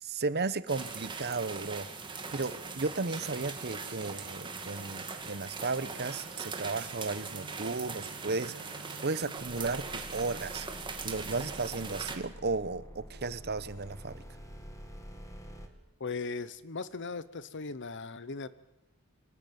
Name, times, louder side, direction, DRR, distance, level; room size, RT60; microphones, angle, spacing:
voice 1, 0.0-8.5 9.0-10.7 11.0-14.2, right 3 dB, 50° right, 16 dB, 1.0 m, -34 dB
sound 1, 0.7-12.2, right 4 dB, 20° right, 2.3 m, -41 dB
Bowed string instrument, 7.1-11.2, right 3 dB, 75° right, 1.9 m, -54 dB
sound 2, 9.4-15.7, equal, 15° left, 2.3 m, -48 dB
voice 2, 16.0-18.5, left 4 dB, 55° left, 16 dB, 0.9 m, -38 dB
25.5 x 17.5 x 9.4 m, 1.0 s
head